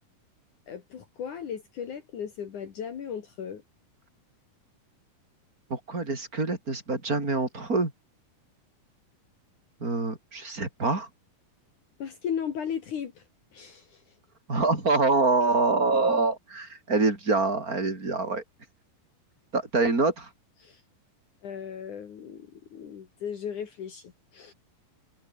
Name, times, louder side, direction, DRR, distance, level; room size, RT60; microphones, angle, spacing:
voice 1, 0.7-3.6 12.0-13.2 13.5-14.0 20.6-20.8 21.4-24.5, left 8 dB, 55° left, 3.5 m, -36 dB
voice 2, 5.7-7.9 9.8-11.1 14.5-18.4 19.5-20.3, right 3 dB, 20° right, 5.4 m, -25 dB
omnidirectional pair, 4.3 m